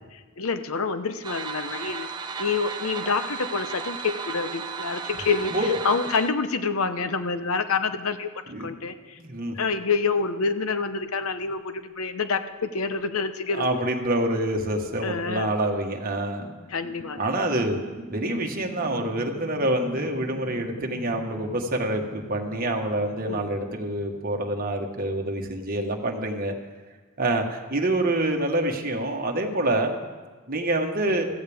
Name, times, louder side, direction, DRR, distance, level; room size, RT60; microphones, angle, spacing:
voice 1, 0.1-2.1 2.4-8.3 8.6-9.2 9.5-13.8 15.0-15.5 16.7-17.5 23.3-23.5, left 4 dB, 75° left, 10 dB, 0.8 m, -27 dB
sound 1, 1.2-6.3, right 5 dB, 20° right, 0.6 m, -34 dB
voice 2, 9.2-9.5 13.5-16.5 17.2-17.8 18.1-26.5 27.2-29.9 30.5-31.3, right 1 dB, 40° right, 2 dB, 1.4 m, -26 dB
sound 2, 16.6-25.0, right 1 dB, 35° left, 3.0 m, -43 dB
15.5 x 14.5 x 3.5 m, 1.4 s
head